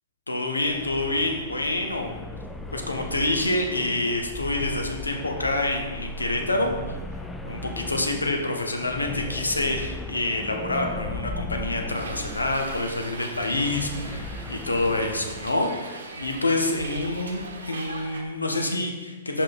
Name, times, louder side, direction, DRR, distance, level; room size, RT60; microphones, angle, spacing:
voice 1, 0.3-2.1 2.7-7.0 7.4-19.4, left 2 dB, 80° left, 3 dB, 0.8 m, -27 dB
sound 1, 0.6-15.5, left 1 dB, 5° left, 0.4 m, -37 dB
Hiss, 11.9-18.2, right 3 dB, 65° right, 0.9 m, -40 dB
5.4 x 5.2 x 4.1 m, 1.3 s
figure-of-eight pair, 110°, 0 cm